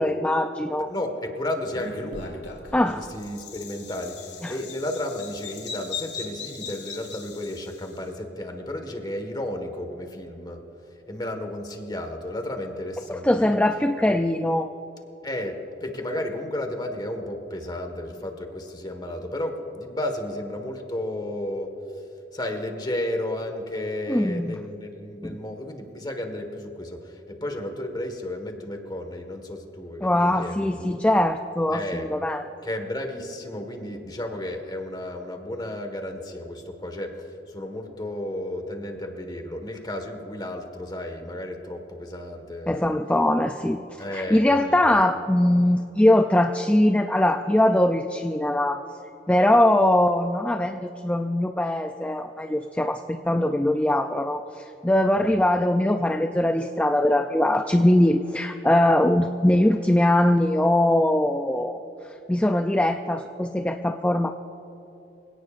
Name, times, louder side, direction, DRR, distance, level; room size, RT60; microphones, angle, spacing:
voice 1, 0.0-0.9 2.7-3.0 4.4-4.5 13.1-14.7 24.1-24.6 25.2-25.4 30.0-32.4 42.7-43.8 44.1-48.8 49.3-61.8 62.3-64.3, left 1 dB, 10° left, 6 dB, 0.4 m, -21 dB
voice 2, 0.9-2.4 2.8-10.6 11.1-13.6 15.2-21.7 22.3-31.0 31.7-32.1 32.6-42.9 44.0-45.0 55.2-55.4, left 1 dB, 25° left, 5 dB, 1.5 m, -33 dB
Bird vocalization bird call bird song, 1.7-8.0, left 6 dB, 75° left, 2.0 m, -39 dB
25.5 x 17.5 x 2.5 m, 3.0 s
head